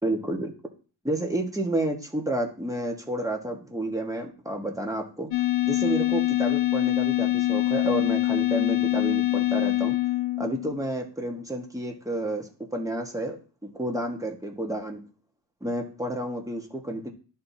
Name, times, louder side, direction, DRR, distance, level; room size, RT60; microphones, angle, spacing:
voice 1, 0.0-0.5 1.0-5.3 5.6-10.0 10.4-15.0 15.6-17.1, right 1 dB, 5° right, 1 dB, 1.5 m, -30 dB
sound 1, 5.3-10.9, left 16 dB, 85° left, 0.7 m, -24 dB
13.5 x 4.4 x 2.7 m, 0.39 s
wide cardioid pair, 80°, 45 cm